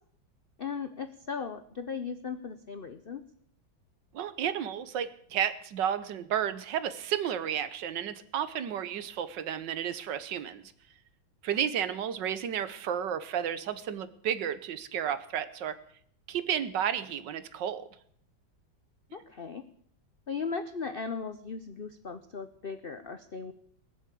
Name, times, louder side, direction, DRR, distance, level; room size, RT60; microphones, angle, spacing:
voice 1, 0.6-3.2 19.1-19.6 20.3-23.5, left 5 dB, 75° left, 10 dB, 0.5 m, -37 dB
voice 2, 4.1-10.7 11.4-15.8 16.3-17.9, right 9 dB, 70° right, 14 dB, 1.5 m, -32 dB
20.5 x 7.4 x 8.4 m, 0.65 s
omnidirectional pair, 2.1 m